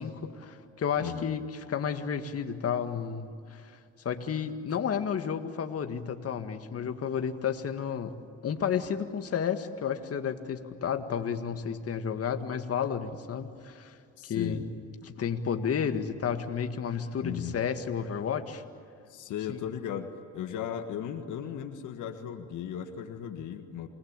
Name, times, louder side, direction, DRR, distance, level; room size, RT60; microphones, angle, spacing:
voice 1, 0.0-1.4 1.7-3.7 4.0-8.2 8.4-13.9 14.2-14.6 15.1-18.6 19.5-19.6, left 7 dB, 50° left, 7 dB, 1.9 m, -31 dB
voice 2, 14.2-14.7 17.2-17.6 19.1-23.9, left 9 dB, 70° left, 7 dB, 1.7 m, -36 dB
28.5 x 20.5 x 9.0 m, 2.4 s
supercardioid pair, 65°, 31 cm